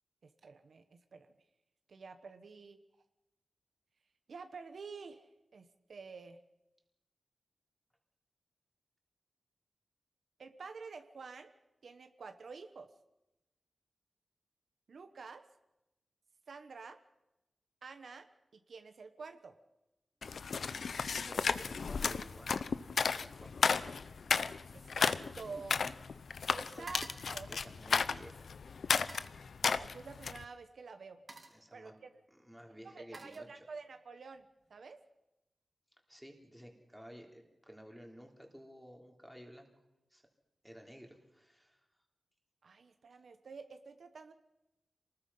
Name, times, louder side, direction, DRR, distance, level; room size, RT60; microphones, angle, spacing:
voice 1, 0.2-1.3 1.9-2.8 4.3-6.4 10.4-11.5 11.8-12.9 14.9-15.4 16.5-17.0 17.8-18.3 18.5-19.6 24.7-25.8 26.5-27.5 29.8-31.2 31.7-32.1 32.8-34.4 34.7-35.0 42.6-44.3, right 4 dB, 65° right, 8 dB, 1.3 m, -49 dB
sound 1, 20.2-30.4, left 5 dB, 70° left, 0.8 m, -34 dB
voice 2, 21.2-22.7 23.1-24.0 26.6-26.8 27.5-28.5 31.5-32.0 32.3-33.6 36.1-39.7 40.1-40.2 40.6-41.8, equal, ahead, 1 dB, 3.4 m, -53 dB
sound 2, 24.1-26.2 26.4-28.3 28.9-29.4 30.4-30.6 31.0-31.7 32.6-34.0 34.3-34.7, right 2 dB, 30° right, 3.2 m, -55 dB
27.5 x 20.0 x 5.7 m, 0.96 s
wide cardioid pair, 160°, 0 cm